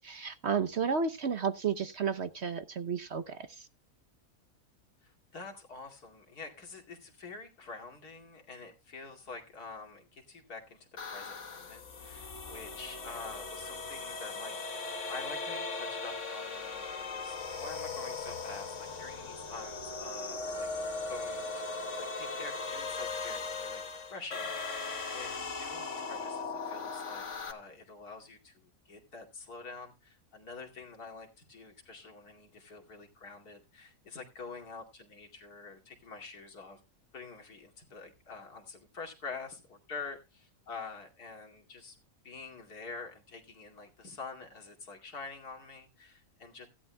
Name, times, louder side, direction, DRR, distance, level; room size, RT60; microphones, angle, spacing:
voice 1, 0.0-3.7, right 6 dB, 55° right, 0.9 m, -32 dB
voice 2, 5.0-23.8 24.1-36.8 37.1-42.0 42.2-46.7, left 4 dB, 85° left, 2.9 m, -47 dB
sound 1, 11.0-27.5, left 4 dB, 50° left, 1.7 m, -38 dB
16.0 x 11.5 x 2.2 m
omnidirectional pair, 1.6 m